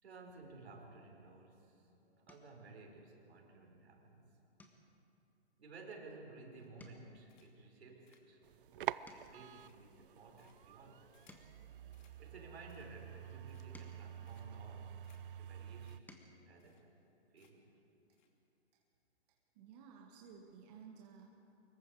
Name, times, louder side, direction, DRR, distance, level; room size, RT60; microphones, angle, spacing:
voice 1, 0.0-1.9 2.2-4.4 5.6-8.4 8.9-11.3 12.2-16.0 16.5-17.0 17.3-17.8, right 3 dB, 70° right, 1 dB, 4.9 m, -55 dB
sound 1, 2.2-2.7 3.2-3.5 3.8-4.0 4.5-6.4 6.6-9.6 10.2-12.7 13.3-15.2 15.7-16.4 17.8-17.9 18.2-18.4, left 1 dB, 5° left, 1.4 m, -64 dB
sound 2, 6.5-6.9 7.3-7.7 8.1-11.5 11.9-12.2 12.6-13.1 13.4-13.9 14.3-14.7 15.0-15.2 15.5-15.6 15.8-16.0 16.2-16.3 16.6-17.1 17.4-17.7 18.1-18.3, left 9 dB, 45° left, 2.7 m, -74 dB
sound 3, 8.4-16.0, right 11 dB, 50° right, 0.5 m, -47 dB
voice 2, 19.3-21.5, right 6 dB, 35° right, 0 dB, 1.9 m, -57 dB
25.0 x 22.0 x 5.0 m, 2.8 s
hypercardioid pair, 135°, 34 cm